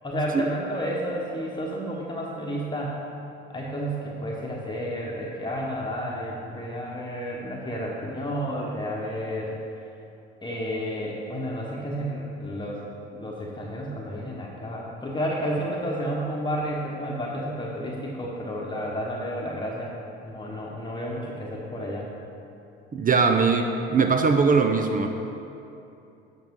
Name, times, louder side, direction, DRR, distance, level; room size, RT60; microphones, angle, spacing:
voice 1, 0.0-2.9 3.5-9.5 10.4-12.8 13.1-19.9 20.2-22.1, equal, 15° left, -4 dB, 1.2 m, -31 dB
voice 2, 22.9-25.1, right 4 dB, 30° right, 5 dB, 0.6 m, -21 dB
10.5 x 6.3 x 3.7 m, 2.8 s
hypercardioid pair, 65°, 29 cm